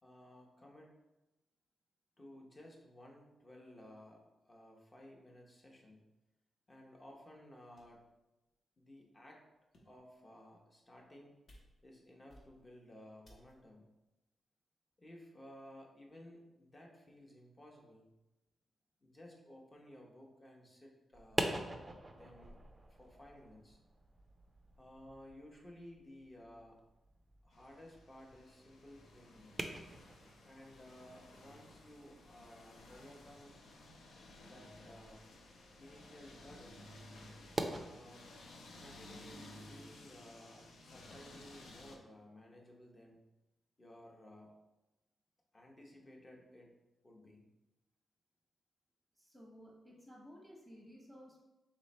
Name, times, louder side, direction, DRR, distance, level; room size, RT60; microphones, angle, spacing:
voice 1, 0.0-0.9 2.2-6.0 6.7-8.0 8.8-9.4 9.8-11.4 11.8-13.9 15.0-18.1 19.0-21.8 22.1-22.6 22.9-23.8 24.8-26.8 27.4-29.5 30.4-33.6 34.3-35.2 35.8-36.8 37.8-38.3 38.8-43.2 43.8-44.5 45.5-46.7 47.0-47.5, left 1 dB, 25° left, 0 dB, 0.8 m, -56 dB
sound 1, 7.8-8.1 8.8-8.9 9.5-10.1 10.8-11.2 11.5-12.0 12.3-12.8 13.2-13.8, equal, 55° left, 1.0 m, -63 dB
sound 2, 21.1-37.8, right 2 dB, 20° right, 0.4 m, -46 dB
sound 3, 27.5-42.0, left 2 dB, 85° left, 0.5 m, -56 dB
voice 2, 49.2-51.4, equal, ahead, -3 dB, 0.9 m, -56 dB
3.3 x 3.1 x 4.1 m, 1.0 s
cardioid pair, 105°, 0 cm